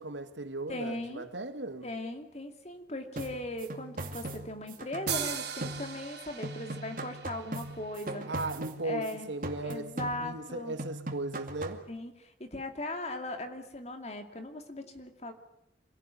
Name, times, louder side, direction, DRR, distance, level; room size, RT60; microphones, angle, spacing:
voice 1, 0.0-1.9 8.3-11.8, right 2 dB, 90° right, 2.0 m, -37 dB
voice 2, 0.7-1.3 1.8-8.3 8.8-9.3 9.6-10.8 11.9-15.3, left 1 dB, 35° left, 2.6 m, -38 dB
sound 1, 3.2-6.2 6.4-9.1 9.4-10.5 10.8-11.9, right 1 dB, 50° right, 2.4 m, -40 dB
sound 2, 5.1-8.6, right 8 dB, 65° right, 3.2 m, -39 dB
26.0 x 16.5 x 9.5 m
head